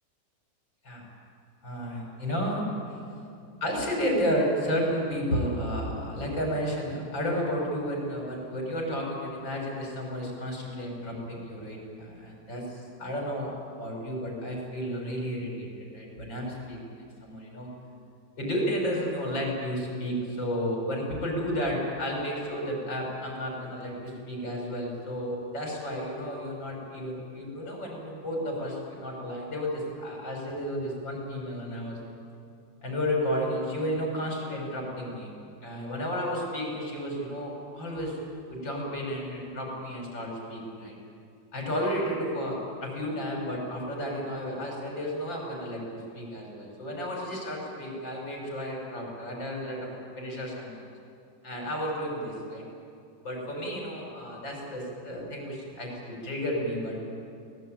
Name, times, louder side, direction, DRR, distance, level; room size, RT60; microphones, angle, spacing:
voice 1, 1.6-2.6 2.9-3.0 3.6-13.5 13.8-17.7 18.4-32.0 32.8-35.3 35.6-38.2 38.5-41.0 41.5-50.7 51.4-52.6 53.2-57.0, equal, 85° left, -1 dB, 6.8 m, -32 dB
23.5 x 19.0 x 9.1 m, 2.5 s
omnidirectional pair, 2.0 m